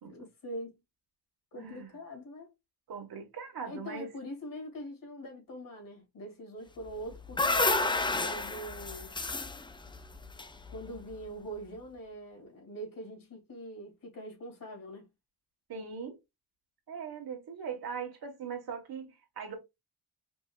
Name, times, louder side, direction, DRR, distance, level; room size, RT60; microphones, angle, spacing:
voice 1, 0.0-0.8 1.5-2.5 3.6-9.1 10.7-15.1, right 1 dB, 55° left, 2.6 m, -43 dB
voice 2, 1.5-1.9 2.9-4.1 15.7-16.2 16.9-19.6, right 6 dB, 65° right, 1.5 m, -40 dB
sound 1, 6.9-11.1, left 3 dB, 15° left, 0.3 m, -31 dB
5.2 x 2.8 x 2.3 m
wide cardioid pair, 155°, 40 cm